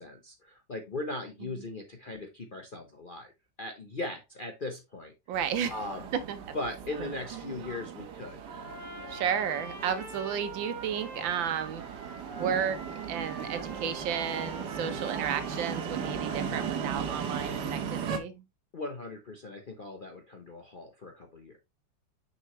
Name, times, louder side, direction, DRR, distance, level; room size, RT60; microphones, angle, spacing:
voice 1, 0.0-3.3 3.6-5.1 5.7-6.0 6.5-8.4 18.7-21.6, left 2 dB, 45° left, 0.7 m, -39 dB
sound 1, 5.3-18.2, right 7 dB, 65° right, 1.5 m, -37 dB
voice 2, 5.3-5.8 6.1-6.4 7.0-7.1 7.4-7.6 9.1-11.8 12.4-12.8 13.1-18.4, right 8 dB, 85° right, 1.6 m, -32 dB
Trumpet, 8.4-16.8, right 1 dB, 50° right, 2.7 m, -45 dB
6.2 x 5.7 x 3.1 m
omnidirectional pair, 2.0 m